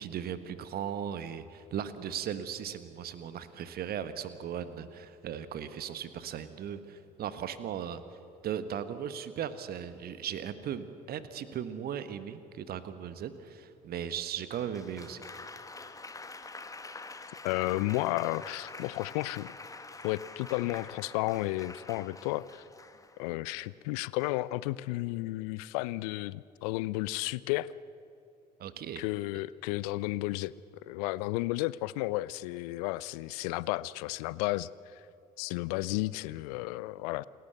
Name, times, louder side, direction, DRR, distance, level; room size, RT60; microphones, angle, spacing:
voice 1, 0.0-8.0 8.4-15.2 28.6-29.0, right 9 dB, 45° right, 13 dB, 1.2 m, -37 dB
Applause, 14.5-23.4 24.2-24.6, left 3 dB, 15° left, 1.2 m, -47 dB
voice 2, 17.4-19.5 20.0-22.6 23.2-27.7 29.0-30.5 30.8-35.0 35.4-37.2, left 19 dB, 65° left, 21 dB, 0.5 m, -33 dB
28.0 x 13.0 x 8.0 m, 2.8 s
figure-of-eight pair, 50°, 21 cm